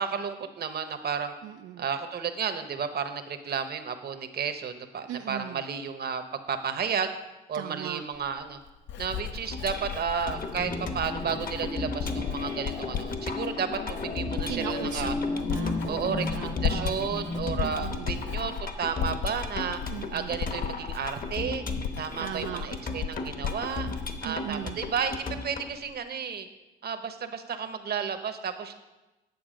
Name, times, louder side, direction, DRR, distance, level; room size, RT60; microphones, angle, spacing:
voice 1, 0.0-1.3 1.8-6.2 6.5-7.1 7.5-8.6 9.0-15.1 15.9-19.8 20.1-21.6 22.0-23.9 24.2-25.2 25.4-26.5 26.8-28.8, right 6 dB, 55° right, 9 dB, 1.0 m, -32 dB
voice 2, 1.4-1.8 5.1-5.6 7.5-8.0 14.5-17.0 17.6-18.1 19.9-20.4 22.2-22.7 24.2-24.8, right 11 dB, 80° right, 6 dB, 0.4 m, -38 dB
Writing, 8.1-25.2 25.5-25.9, left 7 dB, 70° left, 0.7 m, -36 dB
sound 1, 9.5-25.7, left 3 dB, 45° left, 1.0 m, -37 dB
sound 2, 10.3-17.6, left 3 dB, 25° left, 0.6 m, -34 dB
9.5 x 6.8 x 5.1 m, 1.1 s
cardioid pair, 90°, 20 cm